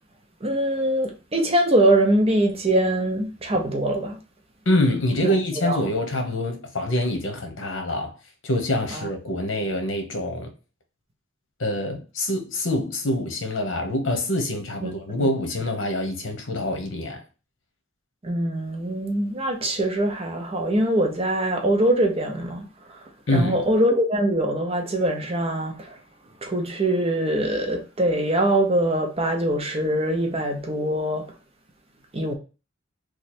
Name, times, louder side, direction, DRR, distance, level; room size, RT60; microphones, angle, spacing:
voice 1, 0.4-4.2 5.2-5.8 8.9-9.1 14.8-14.9 15.2-15.3 18.2-23.0 23.3-26.0 26.4-31.2 32.1-32.3, right 1 dB, 30° right, 0.7 m, -23 dB
voice 2, 4.7-8.1 8.4-10.5 11.6-17.2 23.3-23.6, left 1 dB, 75° left, 1.0 m, -25 dB
3.1 x 2.4 x 4.2 m
head